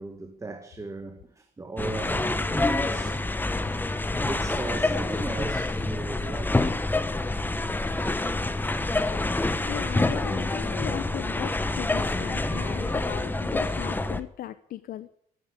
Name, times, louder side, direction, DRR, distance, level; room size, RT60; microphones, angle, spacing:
voice 1, 0.0-3.8 4.2-6.9 8.4-8.5 11.9-13.4, right 3 dB, 20° right, 1.6 m, -38 dB
sound 1, 1.8-14.2, left 2 dB, 10° left, 1.1 m, -27 dB
voice 2, 9.6-15.1, left 12 dB, 60° left, 0.8 m, -37 dB
13.5 x 10.5 x 10.0 m
cardioid pair, 110°, 17 cm